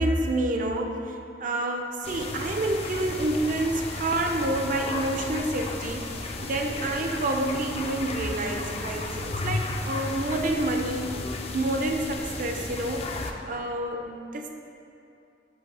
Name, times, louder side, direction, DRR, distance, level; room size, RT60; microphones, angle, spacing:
voice 1, 0.0-11.1 11.5-13.1 13.5-14.6, right 1 dB, 50° right, 3 dB, 0.5 m, -28 dB
sound 1, 2.0-13.3, left 2 dB, 35° left, 0.4 m, -34 dB
7.8 x 2.7 x 6.0 m, 2.6 s
head